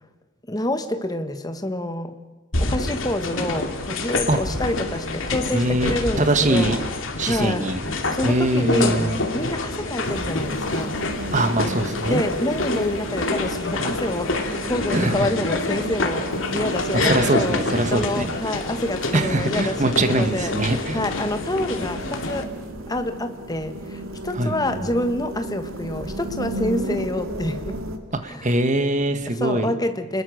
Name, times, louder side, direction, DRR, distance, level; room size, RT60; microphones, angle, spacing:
voice 1, 0.5-2.1 2.6-6.8 7.2-7.6 8.1-9.0 9.3-11.0 12.0-17.6 17.9-22.5 22.9-27.8 28.3-28.5 29.4-30.2, left 1 dB, 20° left, 8 dB, 1.5 m, -27 dB
sound 1, 2.5-22.4, left 2 dB, 70° left, 2.5 m, -27 dB
voice 2, 5.5-6.8 7.2-7.8 8.2-9.2 11.3-12.2 14.9-15.3 16.9-18.3 19.1-21.0 24.3-24.7 28.2-29.8, right 1 dB, 35° right, 8 dB, 1.7 m, -22 dB
sound 2, 10.0-28.0, right 1 dB, 85° right, 2.5 m, -35 dB
29.0 x 21.0 x 6.6 m, 1.2 s
head